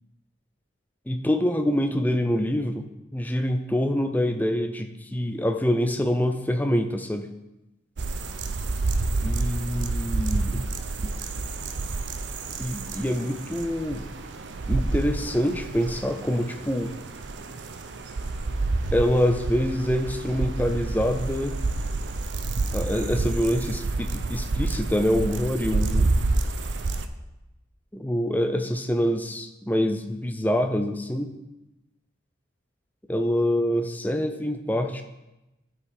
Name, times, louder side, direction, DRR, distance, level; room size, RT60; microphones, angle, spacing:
voice 1, 1.1-2.9 3.1-7.3 9.2-10.7 12.6-14.1 14.7-17.0 18.9-21.6 22.7-26.1 27.9-31.3 33.1-35.0, equal, 10° left, 6 dB, 0.5 m, -25 dB
sound 1, 8.0-27.1, right 3 dB, 75° right, 0.6 m, -29 dB
11.5 x 4.9 x 4.8 m, 0.99 s
head